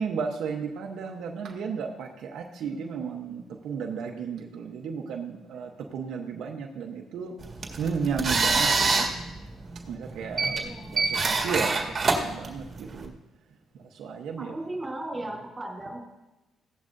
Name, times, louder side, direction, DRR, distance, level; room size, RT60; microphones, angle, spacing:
voice 1, 0.0-7.4 7.8-9.1 9.9-13.1 13.8-14.7, right 6 dB, 75° right, 1 dB, 1.0 m, -34 dB
sound 1, 7.4-13.1, right 3 dB, 35° right, 1.9 m, -26 dB
voice 2, 10.4-11.1 14.4-16.0, right 1 dB, 20° right, 0 dB, 3.7 m, -37 dB
15.5 x 11.0 x 2.7 m, 1.0 s
cardioid pair, 90°, 0 cm